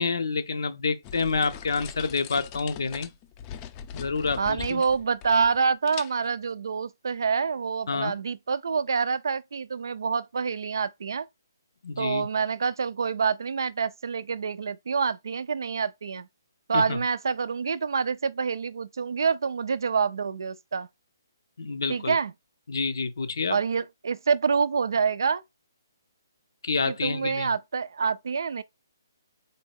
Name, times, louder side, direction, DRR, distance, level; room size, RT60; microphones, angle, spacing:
voice 1, 0.0-3.1 3.9-4.8 7.9-8.2 11.8-12.3 16.7-17.0 21.6-22.2 22.7-23.6 26.6-27.5, left 4 dB, 75° left, 0.6 m, -28 dB
sound 1, 1.0-5.6 5.9-6.4, left 8 dB, 25° left, 0.4 m, -41 dB
voice 2, 4.4-11.3 12.0-16.3 16.7-20.9 21.9-22.3 23.5-25.4 26.9-28.6, right 5 dB, 70° right, 0.3 m, -27 dB
4.0 x 2.2 x 3.4 m
hypercardioid pair, 145°, 2 cm